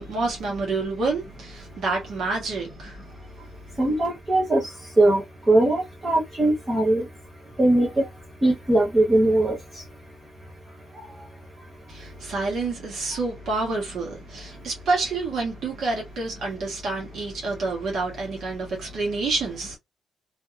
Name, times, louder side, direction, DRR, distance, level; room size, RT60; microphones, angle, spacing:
voice 1, 0.0-3.0 11.9-19.8, right 3 dB, 60° right, 1.3 m, -28 dB
voice 2, 3.8-4.6 5.0-5.2 5.5-7.1 7.6-8.0 8.4-9.6, right 2 dB, 20° right, 0.9 m, -20 dB
2.9 x 2.7 x 2.4 m
wide cardioid pair, 170°, 0 cm